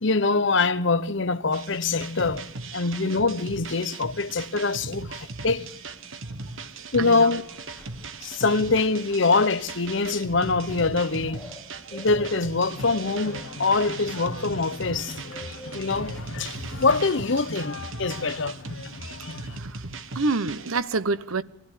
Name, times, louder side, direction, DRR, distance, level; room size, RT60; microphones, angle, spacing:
voice 1, 0.0-2.4 2.7-5.6 6.9-7.4 8.2-11.4 11.9-15.1 15.7-18.6, left 3 dB, 60° left, 1.0 m, -24 dB
sound 1, 1.5-20.8, right 3 dB, 70° right, 1.4 m, -38 dB
voice 2, 7.0-7.3 11.7-11.8 15.3-15.4 19.5-19.8 20.1-21.4, right 3 dB, 85° right, 1.0 m, -27 dB
sound 2, 7.3-16.9, equal, 5° left, 3.5 m, -48 dB
sound 3, 12.7-19.6, left 3 dB, 85° left, 1.7 m, -40 dB
24.0 x 15.5 x 8.2 m
head